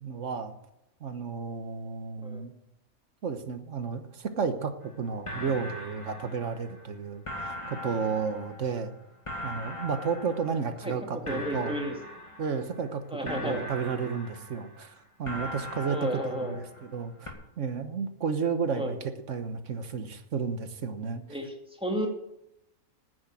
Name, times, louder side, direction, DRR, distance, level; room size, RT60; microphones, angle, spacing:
voice 1, 0.0-0.5 1.0-2.5 3.2-8.9 9.4-11.7 12.4-14.9 15.2-21.2, right 5 dB, 60° right, 9 dB, 1.5 m, -32 dB
sound 1, 4.8-4.9 5.3-6.9 7.3-11.0 11.3-12.9 13.3-14.9 15.3-17.0 17.3-17.4, equal, 20° left, 2.1 m, -40 dB
voice 2, 10.8-12.0 13.1-13.6 15.9-16.5 18.7-18.9 21.3-22.1, equal, 5° right, 1 dB, 2.2 m, -33 dB
10.0 x 9.6 x 9.0 m, 0.86 s
omnidirectional pair, 1.4 m